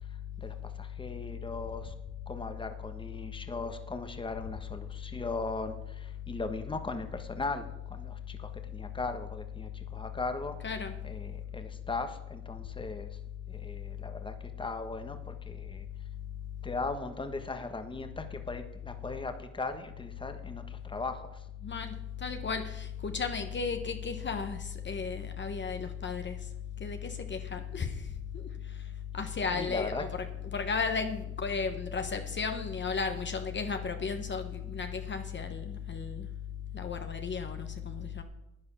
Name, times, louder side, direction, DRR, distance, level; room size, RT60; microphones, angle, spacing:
voice 1, 0.4-1.9 2.3-10.6 11.0-13.2 13.5-15.9 16.6-21.5 29.5-30.0, left 3 dB, 15° left, 7 dB, 1.3 m, -38 dB
voice 2, 10.6-10.9 21.6-26.4 26.8-28.1 28.3-28.5 29.1-36.3 36.7-38.2, left 5 dB, 40° left, 6 dB, 1.3 m, -34 dB
10.5 x 9.6 x 7.0 m, 0.87 s
cardioid pair, 90°, 30 cm